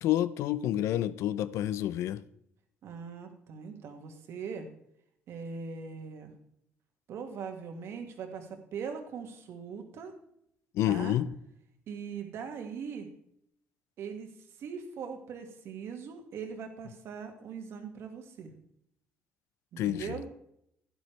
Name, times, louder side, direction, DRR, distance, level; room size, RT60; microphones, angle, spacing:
voice 1, 0.0-2.2 10.7-11.3 19.8-20.2, left 12 dB, 75° left, 0.6 m, -29 dB
voice 2, 2.8-4.7 5.3-6.3 7.1-10.1 10.8-11.2 11.9-13.1 14.0-14.3 14.6-18.5 19.7-20.3, right 6 dB, 60° right, 2.0 m, -40 dB
12.0 x 11.0 x 3.3 m
cardioid pair, 130°, 5 cm